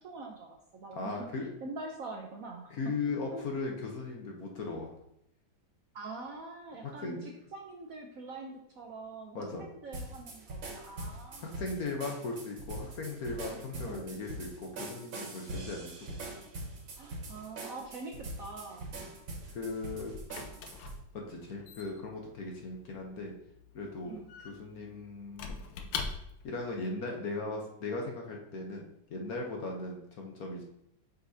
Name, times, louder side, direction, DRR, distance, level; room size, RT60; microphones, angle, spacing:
voice 1, 0.0-1.2 1.6-2.7 3.3-3.5 5.9-11.6 13.5-13.6 13.8-14.1 17.0-18.1 18.4-18.9 24.0-24.3, right 3 dB, 60° right, 1 dB, 0.9 m, -44 dB
voice 2, 1.0-1.5 2.7-4.9 6.8-7.2 9.3-9.6 11.3-16.3 19.0-19.1 19.5-20.1 21.1-23.3 23.7-25.5 26.4-30.6, left 3 dB, 55° left, 1 dB, 1.3 m, -38 dB
sound 1, 9.9-21.0, right 2 dB, 85° right, 2.1 m, -43 dB
Squeak / Wood, 19.4-26.6, left 5 dB, 80° left, 1.5 m, -43 dB
7.8 x 5.4 x 2.7 m, 0.78 s
omnidirectional pair, 2.1 m